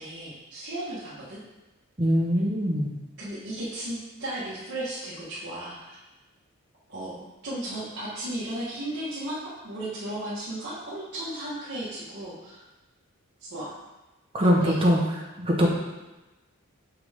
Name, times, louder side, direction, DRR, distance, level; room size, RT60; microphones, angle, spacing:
voice 1, 0.0-1.4 3.2-6.0 6.9-9.4 9.6-12.6 13.4-13.8 14.6-14.9, right 1 dB, 55° right, -11 dB, 1.6 m, -35 dB
voice 2, 2.0-2.9 14.3-15.0 15.4-15.7, equal, 25° right, -2 dB, 1.1 m, -22 dB
5.8 x 5.5 x 3.6 m, 1.1 s
head